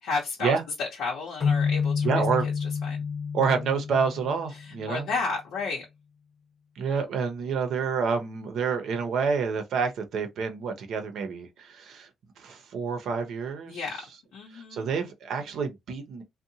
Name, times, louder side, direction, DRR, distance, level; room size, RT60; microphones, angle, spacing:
voice 1, 0.0-2.2 2.8-3.0 4.6-5.8 13.7-14.0 14.3-14.9, left 4 dB, 85° left, 0.7 m, -32 dB
sound 1, 1.4-4.9, left 6 dB, 55° left, 1.0 m, -29 dB
voice 2, 2.0-2.5 3.3-5.1 6.8-12.1 12.4-13.8 14.5-16.2, right 5 dB, 70° right, 0.6 m, -28 dB
2.7 x 2.1 x 2.7 m
cardioid pair, 90°, 0 cm